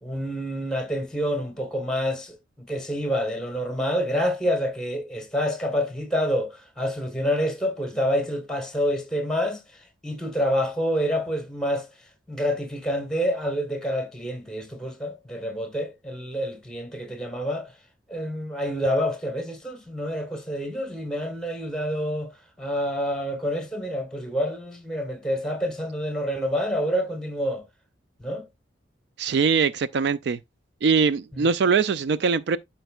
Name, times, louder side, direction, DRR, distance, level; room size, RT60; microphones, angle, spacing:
voice 1, 0.0-11.9 12.3-17.7 18.1-22.3 22.6-27.6 28.2-28.4 31.3-31.5, equal, 5° left, 1.4 m, -27 dB
voice 2, 29.2-30.4 30.8-32.6, right 5 dB, 60° right, 0.3 m, -22 dB
12.0 x 4.5 x 2.3 m
head